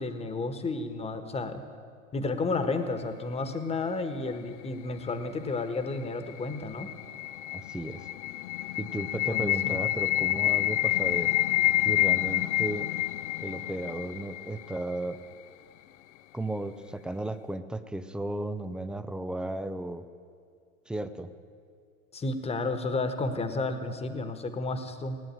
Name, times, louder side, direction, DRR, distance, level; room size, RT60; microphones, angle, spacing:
voice 1, 0.0-1.6 2.1-6.9 9.2-9.8 22.1-25.2, left 3 dB, 15° left, 9 dB, 1.3 m, -32 dB
sound 1, 6.1-15.0, left 15 dB, 65° left, 0.6 m, -28 dB
voice 2, 7.5-8.1 8.8-11.3 11.8-12.9 13.4-15.2 16.3-20.1 20.9-21.3, right 1 dB, ahead, 11 dB, 0.3 m, -34 dB
17.5 x 9.1 x 9.0 m, 2.3 s
hypercardioid pair, 100°, 40 cm